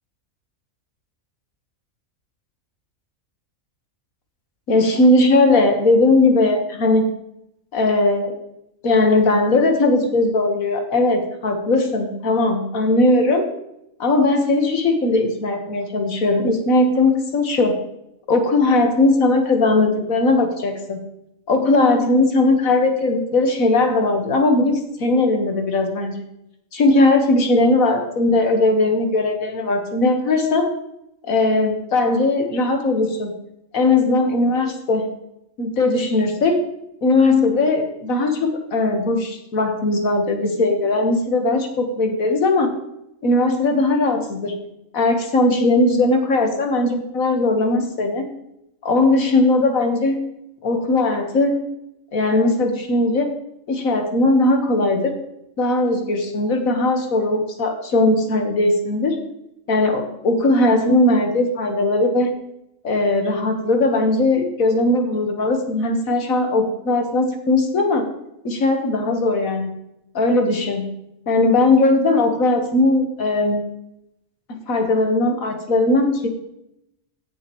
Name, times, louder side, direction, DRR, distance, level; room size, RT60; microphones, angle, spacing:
voice 1, 4.7-7.1 7.7-8.3 8.8-13.5 14.0-17.8 18.3-21.0 21.5-26.1 26.7-30.7 31.3-33.3 33.7-35.1 35.6-36.6 37.0-42.7 43.2-44.6 44.9-48.3 48.8-50.2 50.6-51.6 52.1-53.3 53.7-55.1 55.6-59.2 59.7-62.3 62.8-68.0 68.4-69.7 70.2-70.9 71.3-73.7 74.5-76.3, left 2 dB, 75° left, 4 dB, 1.9 m, -18 dB
16.0 x 7.3 x 3.1 m, 0.82 s
omnidirectional pair, 1.4 m